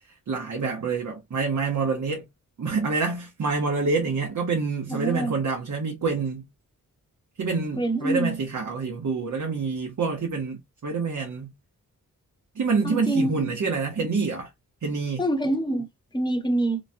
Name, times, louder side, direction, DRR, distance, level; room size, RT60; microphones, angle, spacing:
voice 1, 0.3-2.3 2.6-6.4 7.4-11.5 12.5-14.5 14.8-15.2, right 4 dB, 55° right, 0.9 m, -27 dB
voice 2, 4.9-5.3 7.8-8.4 12.8-13.5 15.2-15.9 16.1-16.8, right 1 dB, 15° left, 1.0 m, -25 dB
3.0 x 2.2 x 2.6 m
cardioid pair, 65°, 35 cm